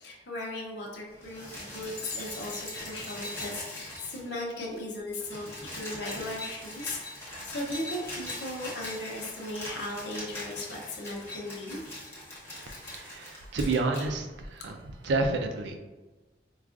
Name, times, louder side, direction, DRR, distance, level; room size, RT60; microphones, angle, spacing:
voice 1, 0.0-11.8, left 1 dB, 70° left, -1 dB, 0.8 m, -37 dB
sound 1, 1.1-4.4 4.7-4.8 5.1-14.1 15.0-15.1, left 1 dB, 15° left, 0.8 m, -41 dB
voice 2, 12.9-14.7 15.0-15.7, right 3 dB, 75° right, 4 dB, 0.4 m, -29 dB
4.5 x 2.3 x 2.5 m, 1.2 s
head